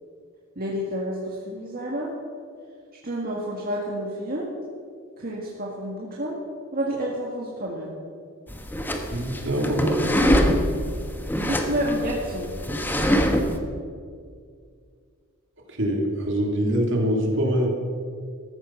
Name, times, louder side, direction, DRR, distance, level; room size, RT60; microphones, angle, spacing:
voice 1, 0.6-2.1 3.0-4.5 5.2-6.4 6.7-7.9 11.4-12.5, equal, 45° right, -3 dB, 1.8 m, -29 dB
sound 1, 8.5-13.6, equal, 10° left, 1.1 m, -24 dB
voice 2, 9.1-10.1 15.7-17.7, equal, 65° right, 1 dB, 2.9 m, -24 dB
14.5 x 12.5 x 5.8 m, 2.2 s
head